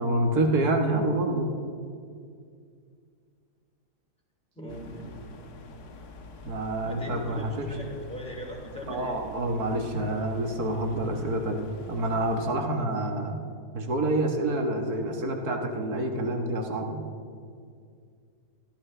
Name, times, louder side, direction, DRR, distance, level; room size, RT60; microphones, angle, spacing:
voice 1, 0.0-1.5 6.4-7.7 8.9-13.4 13.7-17.0, right 1 dB, 65° right, 3 dB, 1.9 m, -27 dB
voice 2, 4.5-5.1 6.8-9.2, equal, 5° left, -2 dB, 3.0 m, -39 dB
sound 1, 4.7-12.5, left 2 dB, 70° left, 1.6 m, -46 dB
24.5 x 14.0 x 3.3 m, 2.2 s
omnidirectional pair, 1.8 m